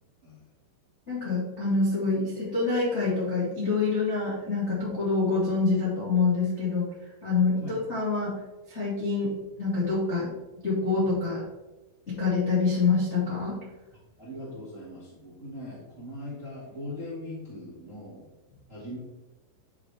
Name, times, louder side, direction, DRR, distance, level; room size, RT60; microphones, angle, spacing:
voice 1, 1.1-6.9 7.2-8.3 8.7-10.3 10.6-11.4 12.1-13.6, left 4 dB, 35° left, -9 dB, 1.0 m, -26 dB
voice 2, 14.2-18.3 18.7-19.0, left 1 dB, 35° right, -7 dB, 1.3 m, -40 dB
10.5 x 4.8 x 3.5 m, 1.1 s
omnidirectional pair, 5.4 m